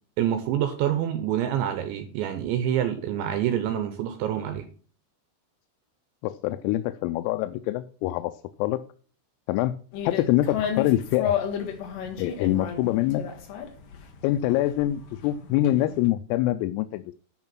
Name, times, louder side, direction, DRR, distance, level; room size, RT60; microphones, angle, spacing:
voice 1, 0.2-4.7, right 10 dB, 80° right, 8 dB, 2.8 m, -26 dB
voice 2, 6.2-8.3 8.6-8.8 9.5-9.8 10.1-11.3 12.2-13.2 14.2-17.1, left 14 dB, 90° left, 10 dB, 3.3 m, -25 dB
sound 1, 9.9-16.1, left 8 dB, 65° left, 2.3 m, -32 dB
11.0 x 5.4 x 6.0 m, 0.42 s
omnidirectional pair, 6.0 m